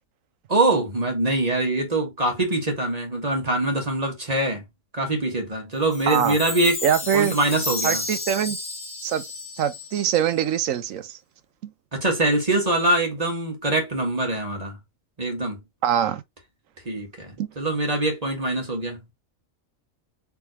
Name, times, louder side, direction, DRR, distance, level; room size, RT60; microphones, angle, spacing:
voice 1, 0.5-4.6 4.9-6.8 7.1-8.0 11.9-14.8 15.2-15.6 16.8-19.0, right 2 dB, 30° right, 1.5 m, -24 dB
Chime, 5.9-10.4, left 2 dB, 25° left, 1.3 m, -32 dB
voice 2, 6.1-6.4 6.8-7.3 7.8-8.6 9.0-9.2 9.6-11.2 15.8-16.2 17.4-17.5, right 9 dB, 80° right, 1.0 m, -23 dB
4.4 x 3.5 x 3.0 m
omnidirectional pair, 1.4 m